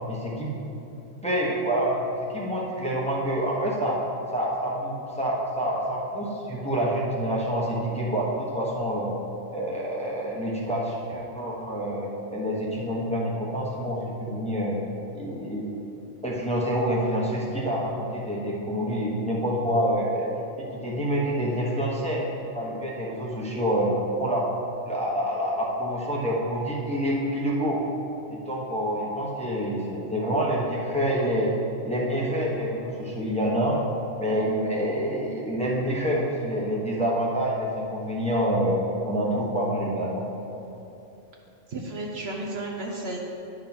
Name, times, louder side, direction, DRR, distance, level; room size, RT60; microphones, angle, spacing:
voice 1, 0.1-0.5 1.2-2.0 2.3-4.0 4.3-9.1 9.5-14.8 15.1-15.6 16.2-20.3 20.6-22.2 22.5-23.9 24.2-24.5 24.8-27.8 28.3-31.5 31.8-33.8 34.2-38.8 39.0-40.3, equal, 5° left, -5 dB, 1.0 m, -27 dB
voice 2, 41.7-43.2, right 2 dB, 60° right, 0 dB, 1.0 m, -33 dB
10.5 x 3.8 x 6.0 m, 2.9 s
omnidirectional pair, 1.3 m